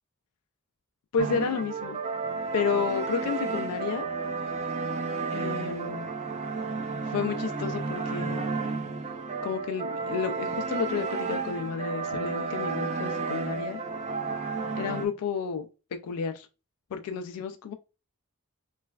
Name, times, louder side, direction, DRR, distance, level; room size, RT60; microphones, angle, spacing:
voice 1, 1.1-2.0 2.5-4.1 5.3-6.1 7.0-8.4 9.4-13.8 14.8-15.7 16.0-16.5 16.9-17.7, left 6 dB, 90° left, 0.3 m, -31 dB
sound 1, 1.2-15.0, right 4 dB, 30° right, 0.4 m, -32 dB
3.1 x 3.1 x 2.3 m
head